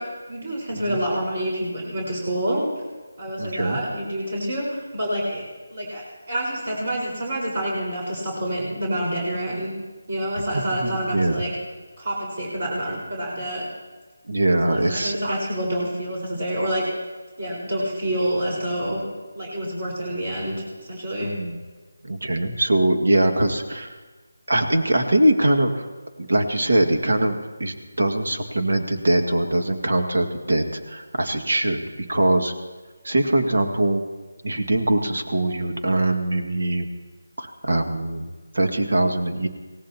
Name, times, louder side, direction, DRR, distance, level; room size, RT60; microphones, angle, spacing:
voice 1, 0.0-2.6 3.2-5.4 5.7-9.7 10.1-11.5 12.0-13.6 14.6-16.8 17.4-19.0 19.3-20.5 20.8-21.3 33.1-33.2, right 1 dB, 45° right, -4 dB, 4.9 m, -27 dB
voice 2, 3.4-3.8 10.8-11.4 14.3-15.4 21.2-21.6 22.0-24.0 24.5-25.9 26.2-32.5 33.0-34.0 34.4-36.9 37.4-38.3 38.5-39.5, right 1 dB, 70° right, 4 dB, 2.0 m, -22 dB
25.0 x 17.5 x 3.0 m, 1.3 s
figure-of-eight pair, 170°, 0 cm